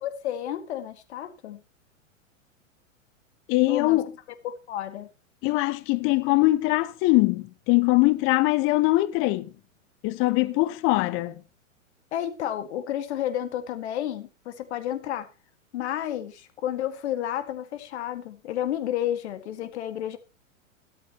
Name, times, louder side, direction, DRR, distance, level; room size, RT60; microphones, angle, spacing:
voice 1, 0.0-1.6 3.7-4.0 4.4-5.1 12.1-15.3 15.7-20.2, left 11 dB, 55° left, 1.9 m, -31 dB
voice 2, 3.5-4.1 5.4-9.5 10.0-11.3, left 20 dB, 30° left, 0.9 m, -22 dB
13.5 x 13.0 x 2.9 m
figure-of-eight pair, 105°, 40 cm